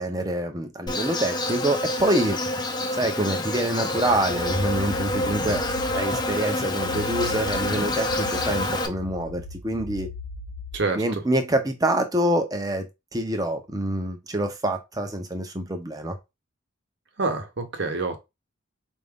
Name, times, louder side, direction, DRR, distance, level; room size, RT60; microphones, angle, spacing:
voice 1, 0.0-2.4 2.9-5.6 5.9-10.1 10.9-16.2, right 1 dB, 20° right, 0.7 m, -26 dB
Insect, 0.9-8.9, left 1 dB, 20° left, 0.5 m, -27 dB
sound 1, 4.0-10.8, left 5 dB, 60° left, 0.7 m, -38 dB
voice 2, 17.2-18.2, right 3 dB, 60° right, 0.9 m, -26 dB
4.7 x 2.6 x 3.5 m
head